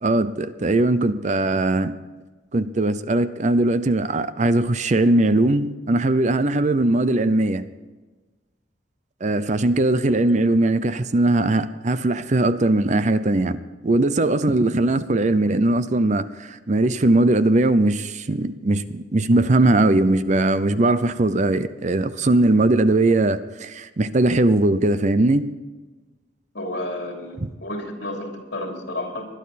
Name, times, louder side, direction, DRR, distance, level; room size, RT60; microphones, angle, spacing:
voice 1, 0.0-1.9 2.5-7.7 9.2-25.5, right 2 dB, 40° right, 0.6 m, -20 dB
voice 2, 26.5-29.3, left 1 dB, 65° left, 3.2 m, -31 dB
20.5 x 11.5 x 4.2 m
head